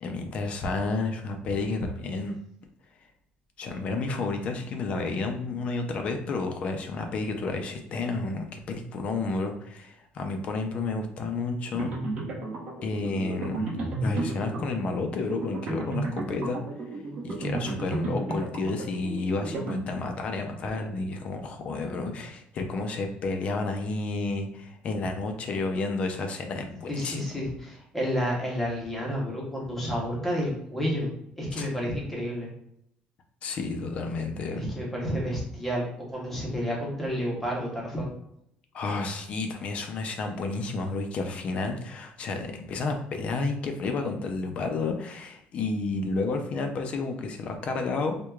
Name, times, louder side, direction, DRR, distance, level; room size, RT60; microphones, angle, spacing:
voice 1, 0.0-2.4 3.6-11.9 12.8-13.7 14.0-16.6 17.2-27.3 31.5-31.7 33.4-34.6 38.7-48.2, left 3 dB, 40° left, 5 dB, 0.4 m, -31 dB
sound 1, 11.7-20.3, right 2 dB, 40° right, 0.8 m, -33 dB
voice 2, 26.9-32.5 34.6-38.1, equal, 5° left, -4 dB, 0.8 m, -30 dB
4.5 x 2.2 x 2.3 m, 0.75 s
cardioid pair, 175°, 3 cm